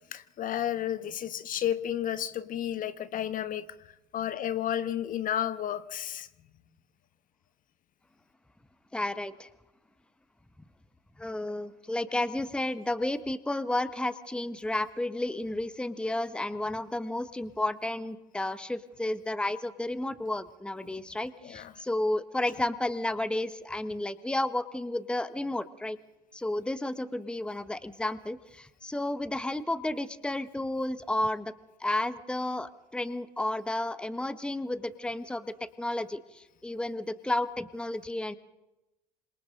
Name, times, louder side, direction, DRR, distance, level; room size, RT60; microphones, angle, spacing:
voice 1, 0.1-3.6 4.1-6.3 21.4-21.7, left 10 dB, 40° left, 13 dB, 1.3 m, -32 dB
voice 2, 8.9-9.5 11.2-26.0 26.3-31.5 31.8-38.3, left 1 dB, 5° left, 13 dB, 1.2 m, -32 dB
27.5 x 26.5 x 3.8 m, 0.96 s
hypercardioid pair, 70°, 21 cm